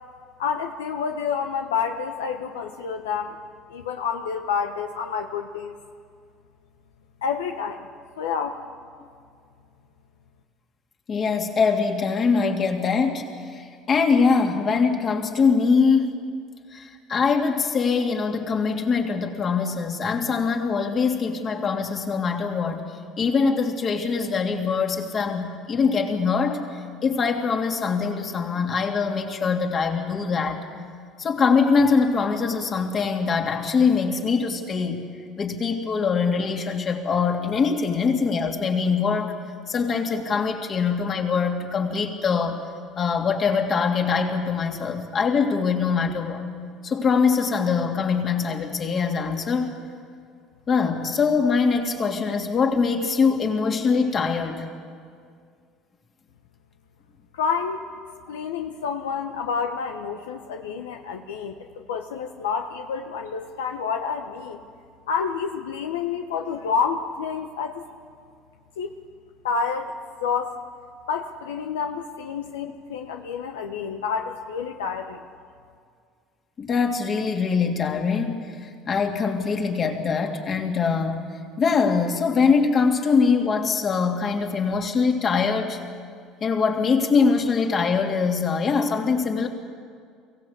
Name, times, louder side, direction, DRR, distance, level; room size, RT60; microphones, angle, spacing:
voice 1, 0.4-3.4 3.7-5.8 7.2-7.9 8.2-8.7 57.3-57.8 58.3-61.6 61.9-64.6 65.1-67.8 68.8-68.9 69.4-69.9 70.2-70.6 71.1-75.2, left 6 dB, 90° left, 5 dB, 1.1 m, -28 dB
voice 2, 11.1-16.3 16.7-22.8 23.2-26.6 27.0-30.6 31.2-35.0 35.4-39.3 39.7-42.6 43.0-46.4 46.8-49.8 50.7-54.7 76.6-85.8 86.4-89.5, left 5 dB, 40° left, 3 dB, 3.0 m, -23 dB
23.5 x 16.5 x 8.3 m, 2.2 s
hypercardioid pair, 75°, 0 cm